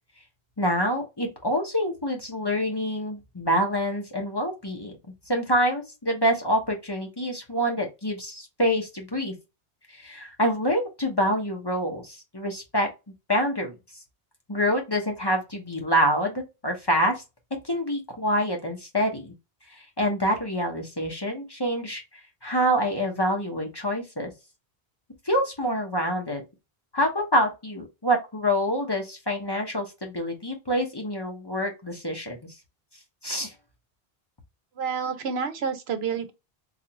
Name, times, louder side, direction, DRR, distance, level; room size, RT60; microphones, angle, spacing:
voice 1, 0.6-4.9 5.3-9.3 10.0-12.9 13.3-13.7 14.5-17.2 17.6-19.3 20.0-22.0 22.4-24.3 25.3-26.4 26.9-32.4 33.2-33.5, equal, 25° left, 0.9 m, -26 dB
voice 2, 34.8-36.3, right 6 dB, 80° right, 1.0 m, -29 dB
4.0 x 2.5 x 2.9 m
omnidirectional pair, 1.0 m